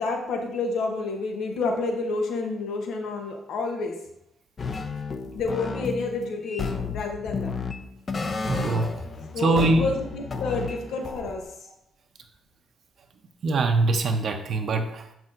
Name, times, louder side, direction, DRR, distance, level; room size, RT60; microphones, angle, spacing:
voice 1, 0.0-4.0 5.3-7.5 9.3-11.5, left 3 dB, 75° left, 3 dB, 0.9 m, -29 dB
sound 1, 4.6-11.4, left 4 dB, 40° left, 0.6 m, -32 dB
voice 2, 8.5-8.9 9.4-9.8 13.4-15.1, right 3 dB, 55° right, 5 dB, 0.7 m, -23 dB
7.0 x 5.9 x 2.6 m, 0.77 s
cardioid pair, 90°, 0 cm